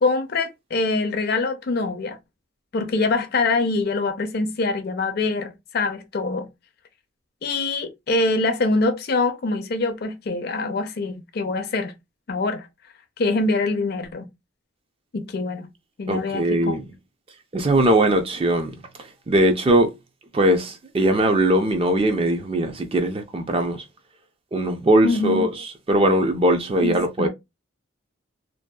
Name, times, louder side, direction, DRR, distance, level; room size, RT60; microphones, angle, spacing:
voice 1, 0.0-2.2 2.7-6.5 7.4-11.9 12.3-12.7 13.2-14.3 15.1-15.7 16.0-16.7 25.0-25.4 26.8-27.3, left 3 dB, 50° left, 0.4 m, -24 dB
voice 2, 16.1-16.8 17.5-18.7 19.3-19.9 20.3-23.8 24.5-25.5 25.9-27.3, right 1 dB, 30° right, 0.4 m, -20 dB
2.6 x 2.3 x 2.2 m
head